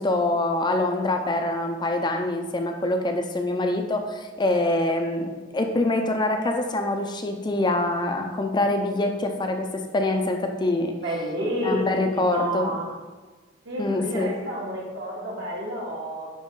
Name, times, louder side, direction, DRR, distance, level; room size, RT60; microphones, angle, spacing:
voice 1, 0.0-10.9 11.6-12.8 13.8-14.3, left 2 dB, 20° left, 4 dB, 0.5 m, -25 dB
voice 2, 11.0-11.8 12.1-12.9 13.6-16.3, right 1 dB, 65° right, -4 dB, 2.2 m, -30 dB
10.5 x 4.3 x 3.7 m, 1.3 s
head